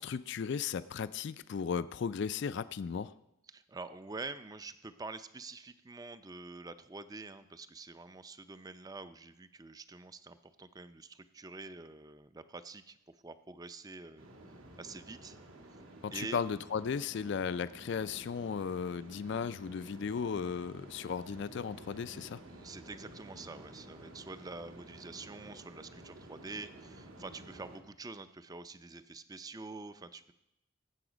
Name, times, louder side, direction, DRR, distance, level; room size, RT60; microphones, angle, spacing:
voice 1, 0.0-3.1 16.0-22.4, left 6 dB, 55° left, 15 dB, 0.3 m, -36 dB
voice 2, 3.5-13.0 13.2-14.3 14.8-15.4 16.1-16.4 22.5-30.3, right 3 dB, 20° right, 12 dB, 0.4 m, -46 dB
sound 1, 14.2-27.8, right 1 dB, 75° right, 1.8 m, -52 dB
18.5 x 7.8 x 5.0 m, 0.88 s
head